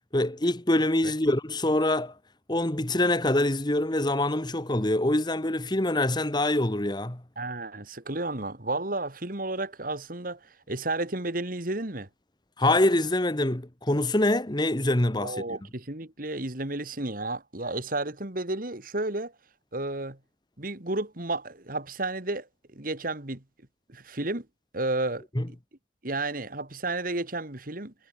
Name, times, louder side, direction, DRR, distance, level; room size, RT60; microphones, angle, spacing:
voice 1, 0.1-2.1 2.5-7.2 12.6-15.4 25.3-25.5, left 1 dB, 25° left, 1.5 m, -25 dB
voice 2, 7.4-12.1 15.2-19.3 19.7-20.2 20.6-22.5 22.7-23.4 23.9-24.5 24.7-25.2 26.0-27.9, right 2 dB, 50° right, 2.4 m, -32 dB
head